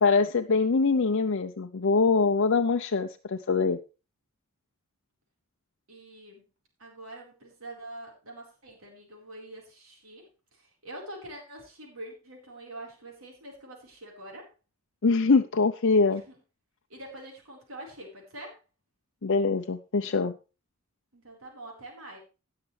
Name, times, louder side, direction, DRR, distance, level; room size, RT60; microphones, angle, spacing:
voice 1, 0.0-3.8 15.0-16.2 19.2-20.3, left 4 dB, 60° left, 6 dB, 0.6 m, -23 dB
voice 2, 5.9-6.4 6.8-10.2 10.5-14.5 16.1-16.4 16.9-18.6 21.1-22.2, right 1 dB, 80° right, -1 dB, 4.2 m, -45 dB
17.5 x 6.7 x 3.3 m, 0.32 s
head